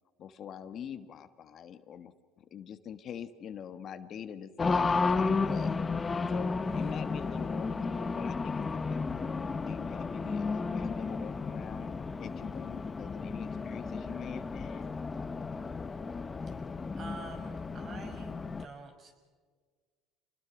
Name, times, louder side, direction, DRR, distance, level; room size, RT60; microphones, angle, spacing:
voice 1, 0.2-5.7 6.3-9.3 9.6-14.9, left 8 dB, 45° left, 11 dB, 1.4 m, -45 dB
Race car auto racing, 4.6-18.7, left 4 dB, 20° left, 1.0 m, -33 dB
voice 2, 17.0-18.3 18.6-19.2, right 4 dB, 40° right, 6 dB, 5.6 m, -46 dB
28.0 x 20.5 x 6.1 m, 1.5 s
supercardioid pair, 105°, 0 cm